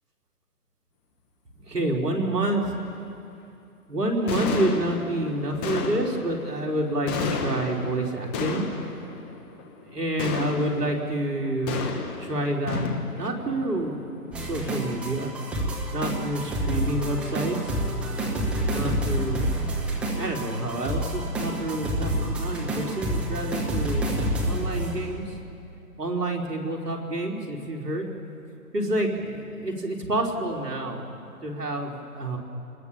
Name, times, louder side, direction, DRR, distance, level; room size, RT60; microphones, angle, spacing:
voice 1, 1.6-2.7 3.9-8.6 9.9-11.8 12.2-12.9 13.1-14.0 14.4-15.4 15.9-17.6 18.7-19.5 20.2-24.1 24.4-25.2 26.0-28.1 28.7-31.1 31.4-32.4, right 1 dB, 85° right, 1 dB, 4.1 m, -28 dB
sound 1, 2.1-2.2 2.6-3.0 4.0-4.1 4.3-15.7, left 4 dB, 15° left, 1.3 m, -33 dB
sound 2, 14.3-25.2, right 1 dB, ahead, 0.9 m, -28 dB
29.5 x 20.5 x 7.2 m, 2.6 s
hypercardioid pair, 150°, 46 cm